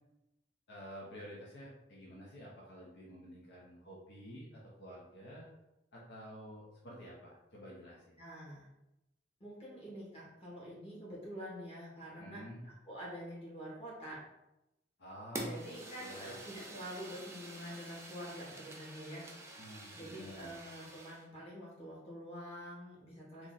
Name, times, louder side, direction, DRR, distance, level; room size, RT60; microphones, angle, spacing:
voice 1, 0.7-5.5 5.9-8.1 12.2-12.6 15.0-15.5 16.0-16.4 19.6-20.6, equal, 65° left, -5 dB, 0.7 m, -50 dB
voice 2, 8.2-8.6 9.4-12.4 12.9-14.2 15.4-19.5 19.9-23.5, equal, 35° left, -6 dB, 1.5 m, -47 dB
Fire, 15.3-21.2, right 2 dB, 15° right, 0.5 m, -48 dB
3.0 x 2.4 x 4.0 m, 0.92 s
head